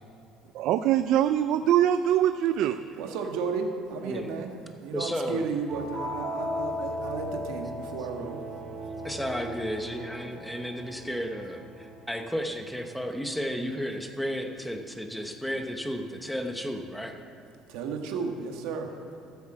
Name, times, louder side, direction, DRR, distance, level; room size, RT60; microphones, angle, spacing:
voice 1, 0.5-2.8, right 11 dB, 60° right, 11 dB, 0.3 m, -23 dB
voice 2, 2.9-4.5 4.8-8.4 17.7-18.9, right 5 dB, 85° right, 3 dB, 1.5 m, -33 dB
voice 3, 4.0-4.3 4.9-5.5 9.0-17.1, equal, ahead, 4 dB, 0.9 m, -33 dB
sound 1, 5.7-12.2, left 1 dB, 35° right, 2.6 m, -37 dB
13.5 x 7.3 x 7.6 m, 2.7 s
cardioid pair, 155°, 0 cm